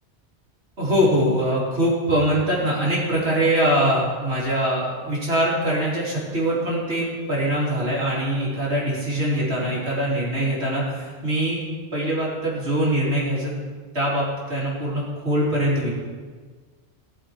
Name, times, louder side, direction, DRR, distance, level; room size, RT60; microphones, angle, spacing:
voice 1, 0.8-11.6 11.9-13.5 13.9-15.9, right 1 dB, 75° right, -6 dB, 4.2 m, -23 dB
19.0 x 7.6 x 4.7 m, 1.5 s
omnidirectional pair, 1.1 m